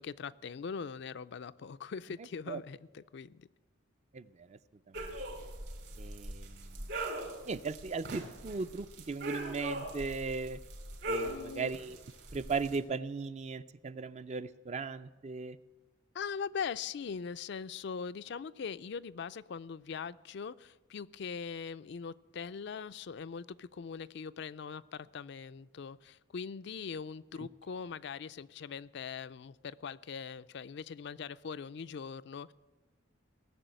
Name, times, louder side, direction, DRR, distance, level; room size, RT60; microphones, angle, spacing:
voice 1, 0.0-3.5 11.2-11.7 16.1-32.5, left 6 dB, 60° left, 14 dB, 0.4 m, -41 dB
voice 2, 4.1-4.6 4.9-5.1 6.0-6.9 7.5-10.6 11.1-12.0 12.3-15.6, right 4 dB, 35° right, 13 dB, 0.4 m, -37 dB
sound 1, 4.9-12.8, right 1 dB, 60° right, 3.0 m, -41 dB
18.5 x 7.0 x 9.1 m, 1.2 s
head